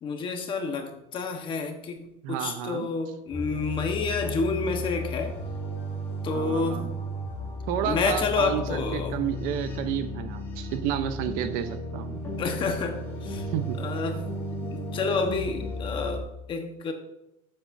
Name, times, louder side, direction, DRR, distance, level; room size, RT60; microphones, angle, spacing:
voice 1, 0.0-5.4 6.2-7.0 7.8-9.2 12.4-13.5 13.8-14.3 14.7-16.9, left 4 dB, 35° left, 5 dB, 1.3 m, -29 dB
voice 2, 2.2-2.9 6.3-6.9 7.7-12.2 13.5-13.8, right 10 dB, 70° right, 10 dB, 0.9 m, -31 dB
sound 1, 3.3-16.2, left 1 dB, 15° left, 3.0 m, -34 dB
12.0 x 7.9 x 2.7 m, 0.86 s
cardioid pair, 150°, 15 cm